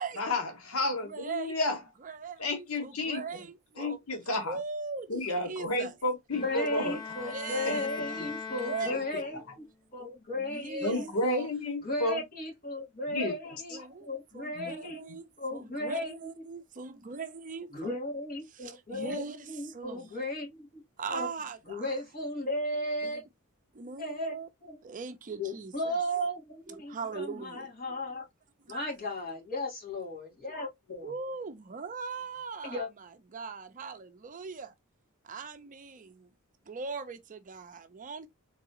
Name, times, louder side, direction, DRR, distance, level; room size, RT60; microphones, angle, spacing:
voice 1, 0.2-1.8 2.4-3.4 3.8-4.6 5.1-7.0 7.7-7.8 8.2-8.3 8.8-9.0 10.8-12.2 13.1-13.3 14.6-14.7, left 2 dB, 80° left, 1.1 m, -31 dB
voice 2, 1.0-1.6 2.0-4.0 4.5-5.9 7.2-8.3 8.6-9.0 10.4-11.1 13.7-14.1 14.3-18.0 18.5-20.1 21.0-22.0 23.0-23.2 23.7-24.5 24.8-26.0 26.7-27.7 28.6-28.9 31.0-34.7 35.2-36.3 36.7-38.3, right 4 dB, 40° right, 0.5 m, -40 dB
Bowed string instrument, 6.3-9.5, left 5 dB, 20° left, 1.2 m, -40 dB
voice 3, 6.4-9.6 9.9-11.5 11.8-15.0 15.4-16.1 17.7-20.8 21.1-21.3 21.7-23.2 24.0-24.3 24.6-24.8 25.4-28.2 28.7-31.1 32.6-32.9, left 1 dB, 45° left, 2.9 m, -35 dB
3.9 x 3.6 x 2.8 m
head